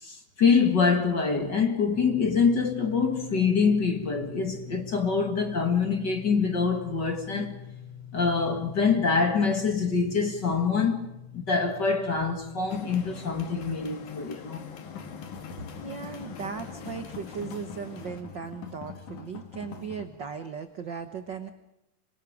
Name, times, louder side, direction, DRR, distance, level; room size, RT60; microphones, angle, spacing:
voice 1, 0.0-7.6 8.1-11.1 11.3-14.7, left 5 dB, 40° left, 2.0 m, -25 dB
sound 1, 1.9-13.4, left 8 dB, 35° right, 5.1 m, -44 dB
sound 2, 12.7-18.2, left 6 dB, 85° left, 3.9 m, -44 dB
sound 3, 14.8-20.1, left 6 dB, 65° left, 4.1 m, -43 dB
voice 2, 15.8-21.5, right 6 dB, 75° right, 1.0 m, -37 dB
27.0 x 25.0 x 5.1 m
omnidirectional pair, 4.0 m